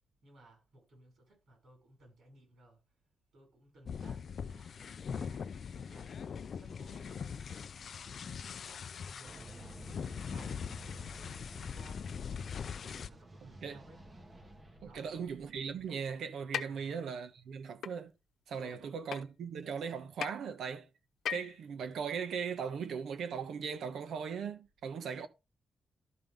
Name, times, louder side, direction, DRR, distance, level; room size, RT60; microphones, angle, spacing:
voice 1, 0.2-2.8 3.3-6.1 6.6-9.8 10.2-14.0 14.8-15.3 16.6-17.0 18.6-18.9, right 1 dB, 65° right, 5.9 m, -59 dB
sound 1, 3.9-13.1, left 6 dB, 50° left, 0.4 m, -42 dB
sound 2, 9.2-16.0, right 1 dB, 20° right, 1.1 m, -53 dB
voice 2, 13.4-13.8 14.8-18.1 18.5-20.9 21.3-25.3, right 6 dB, 85° right, 1.1 m, -39 dB
sound 3, 16.5-16.6 17.8-17.9 19.1-19.2 20.2-20.3 21.3-21.6, left 9 dB, 80° left, 0.8 m, -35 dB
12.5 x 5.4 x 3.5 m
wide cardioid pair, 180°, 0 cm